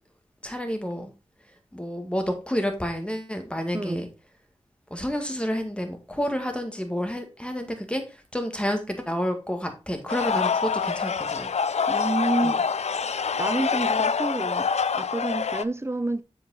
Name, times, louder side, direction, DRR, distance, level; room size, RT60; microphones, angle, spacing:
voice 1, 0.4-1.1 1.7-4.1 4.9-8.0 8.3-11.5 12.4-12.6, equal, 10° left, 2.0 m, -29 dB
voice 2, 3.7-4.1 11.9-12.6 13.4-14.7 14.9-16.2, right 2 dB, 20° right, 0.8 m, -28 dB
sound 1, 10.1-15.6, left 5 dB, 70° left, 0.4 m, -26 dB
7.4 x 5.1 x 4.1 m
cardioid pair, 40°, 12 cm